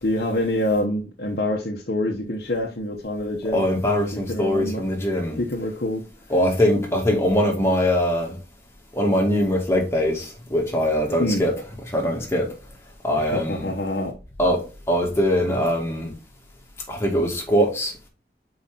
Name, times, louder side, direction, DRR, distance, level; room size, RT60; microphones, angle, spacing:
voice 1, 0.0-3.6 4.1-4.8 5.4-6.0 11.2-11.4 13.2-14.1, left 1 dB, 60° left, 1.0 m, -26 dB
voice 2, 3.5-5.4 6.3-8.4 8.9-11.5 11.9-12.5 13.0-13.7 14.4-14.6 14.9-16.1 16.9-17.9, equal, 15° left, 2.1 m, -22 dB
5.8 x 4.8 x 3.8 m
head